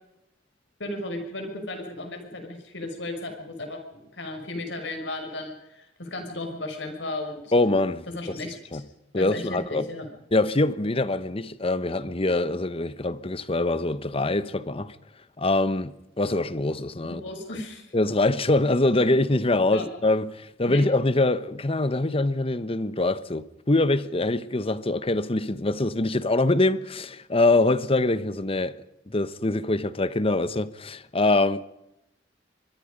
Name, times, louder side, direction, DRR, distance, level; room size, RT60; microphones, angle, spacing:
voice 1, 0.8-7.5 8.1-8.8 9.2-10.1 17.1-17.9 19.7-19.9 20.7-20.8, left 2 dB, 70° left, 6.1 m, -35 dB
voice 2, 7.5-8.3 8.7-8.8 9.1-9.9 10.3-14.9 15.4-17.2 17.9-28.8 29.1-31.7, left 2 dB, 30° left, 1.0 m, -24 dB
25.0 x 22.5 x 5.3 m
head